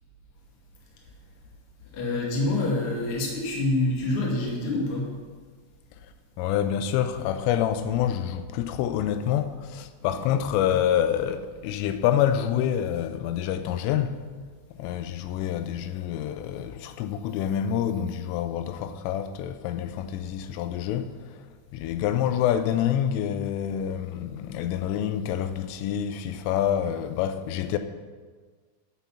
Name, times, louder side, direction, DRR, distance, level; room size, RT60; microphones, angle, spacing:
voice 1, 1.9-5.1 10.2-10.3, left 2 dB, 55° left, 1.6 m, -26 dB
voice 2, 6.4-14.2 14.8-21.1 21.7-27.8, left 10 dB, 90° left, 3.2 m, -27 dB
9.8 x 7.2 x 5.6 m
omnidirectional pair, 5.6 m